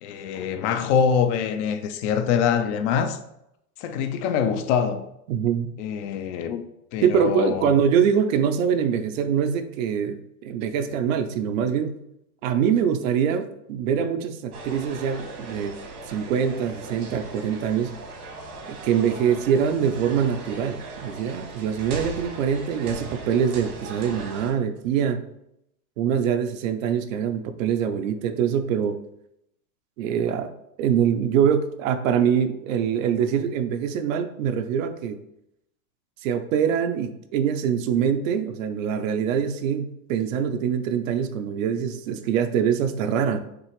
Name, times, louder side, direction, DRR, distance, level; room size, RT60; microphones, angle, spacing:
voice 1, 0.0-3.2 3.8-5.1 5.8-6.6 6.9-7.7, left 7 dB, 50° left, 0.6 m, -24 dB
voice 2, 5.3-5.7 7.0-11.9 12.4-15.7 16.1-17.9 18.7-25.2 26.0-29.0 30.0-30.5 30.8-35.2 36.2-43.4, right 8 dB, 65° right, 0.6 m, -24 dB
sound 1, 14.5-24.5, right 3 dB, 85° right, 1.7 m, -38 dB
6.0 x 2.5 x 3.2 m
hypercardioid pair, 120°, 44 cm